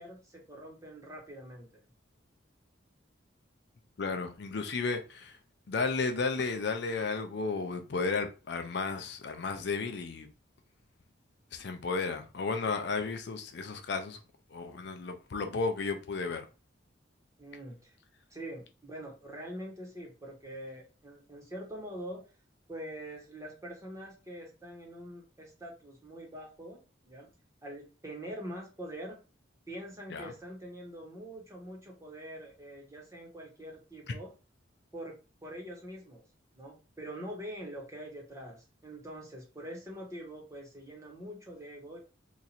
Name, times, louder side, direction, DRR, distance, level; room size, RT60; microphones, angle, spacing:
voice 1, 0.0-1.8 17.4-18.0 18.3-22.2 22.7-26.8 27.0-27.3 27.6-29.2 29.7-34.3 34.9-35.1 35.4-36.2 36.5-42.0, right 1 dB, 15° right, 1.1 m, -44 dB
voice 2, 4.0-5.4 5.7-10.3 11.5-14.2 14.5-16.4 30.1-30.3, left 4 dB, 60° left, 0.4 m, -33 dB
2.9 x 2.5 x 4.1 m
head